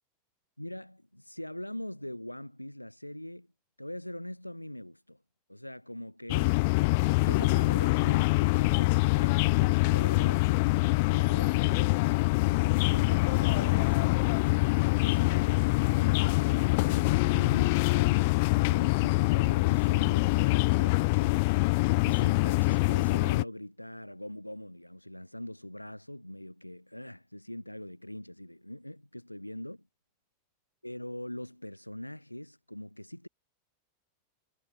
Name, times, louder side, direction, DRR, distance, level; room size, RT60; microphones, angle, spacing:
voice 1, 0.6-3.5 3.8-5.2 5.5-6.6 7.2-21.5 22.0-29.9 30.8-33.3, left 1 dB, 90° left, 4.4 m, -42 dB
sound 1, 6.3-23.4, left 26 dB, 50° left, 0.7 m, -25 dB
figure-of-eight pair, 90°, 0 cm